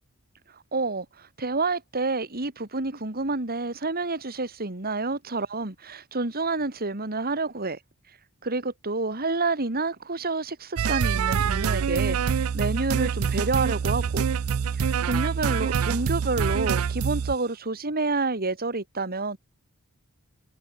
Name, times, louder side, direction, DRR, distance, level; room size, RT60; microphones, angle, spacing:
voice 1, 0.7-7.8 8.4-14.2 14.8-19.4, right 3 dB, 45° right, 2.7 m, -29 dB
sound 1, 10.8-17.4, right 6 dB, 75° right, 0.4 m, -25 dB
head